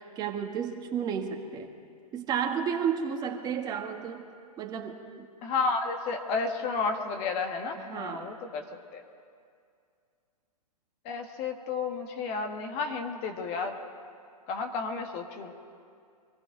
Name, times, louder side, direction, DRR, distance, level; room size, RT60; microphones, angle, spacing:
voice 1, 0.0-1.7 2.1-4.3 4.6-5.3 7.7-8.3, right 7 dB, 20° right, 3 dB, 1.5 m, -32 dB
voice 2, 5.4-8.6 8.9-9.0 11.0-13.8 14.5-15.5, left 4 dB, 30° left, 5 dB, 1.4 m, -32 dB
24.5 x 15.0 x 3.8 m, 2.3 s
hypercardioid pair, 135°, 20 cm